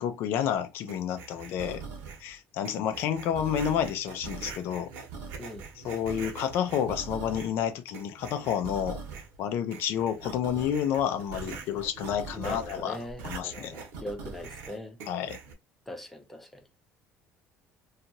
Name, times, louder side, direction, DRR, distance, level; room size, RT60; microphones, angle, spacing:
voice 1, 0.0-1.8 2.2-4.9 5.8-9.0 9.4-13.0 13.2-13.8 15.1-15.4, left 9 dB, 60° left, 0.5 m, -30 dB
sound 1, 0.9-2.3 2.6-7.6 7.9-9.4 9.7-15.5, right 5 dB, 65° right, 0.9 m, -42 dB
voice 2, 12.3-15.0 15.9-16.6, equal, 5° left, 0.5 m, -41 dB
2.8 x 2.4 x 2.6 m
cardioid pair, 175°, 4 cm